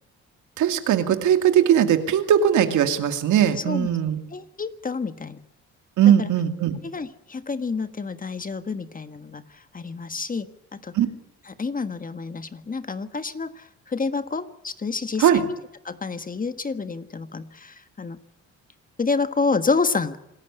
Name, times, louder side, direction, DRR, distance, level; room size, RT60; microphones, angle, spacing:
voice 1, 0.6-4.2 6.0-6.8 10.9-11.1 15.2-15.4, right 9 dB, 80° right, 7 dB, 2.5 m, -19 dB
voice 2, 4.3-5.4 6.2-6.3 6.8-11.0 11.6-15.5 15.8-18.2 19.0-20.2, left 4 dB, 30° left, 11 dB, 1.5 m, -28 dB
27.0 x 13.0 x 9.9 m, 0.84 s
cardioid pair, 90°, 30 cm